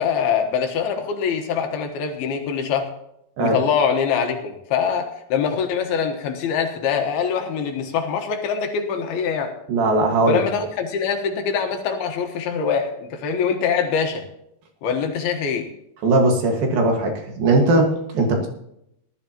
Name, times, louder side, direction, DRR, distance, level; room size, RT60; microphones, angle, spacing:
voice 1, 0.0-2.9 3.4-9.5 10.3-14.2 14.8-15.7, left 6 dB, 75° left, 4 dB, 3.0 m, -23 dB
voice 2, 9.7-10.4 16.0-18.5, right 2 dB, 65° right, 2 dB, 3.4 m, -19 dB
18.5 x 12.0 x 2.9 m, 0.78 s
omnidirectional pair, 4.7 m